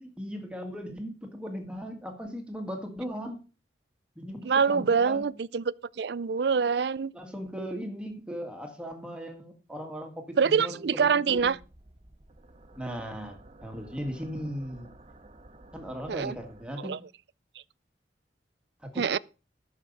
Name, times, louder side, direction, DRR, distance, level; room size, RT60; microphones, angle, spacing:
voice 1, 0.0-3.4 4.2-5.3 7.1-11.5 12.8-14.9 15.7-17.0 18.9-19.1, equal, 5° right, 1.8 m, -38 dB
voice 2, 4.4-7.1 10.4-11.6 16.1-16.4 16.8-17.0 19.0-19.2, right 6 dB, 70° right, 0.4 m, -25 dB
sound 1, 11.3-16.7, right 1 dB, 35° right, 1.3 m, -53 dB
13.5 x 6.6 x 5.4 m
head